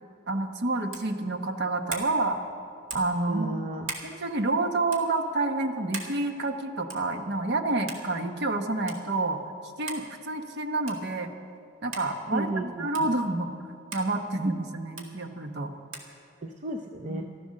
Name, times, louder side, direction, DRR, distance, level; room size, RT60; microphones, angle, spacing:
voice 1, 0.3-2.4 2.9-3.5 4.0-9.4 9.8-11.3 11.8-13.5 13.9-15.7 17.1-17.2, right 2 dB, 55° right, 6 dB, 1.0 m, -28 dB
sound 1, 0.9-1.1 1.9-2.1 2.9-3.2 3.8-4.1 4.9-5.1 5.9-6.2 6.9-7.1 7.9-8.1 8.9-9.0 9.9-10.1 10.9-11.1 11.9-12.1 12.9-13.1 13.9-14.1 15.0-15.1 15.9-16.1, right 3 dB, 85° right, 2.0 m, -38 dB
voice 2, 3.3-3.9 12.3-13.1 16.4-17.3, right 2 dB, 35° right, 4 dB, 0.6 m, -33 dB
14.5 x 12.5 x 6.5 m, 2.5 s
head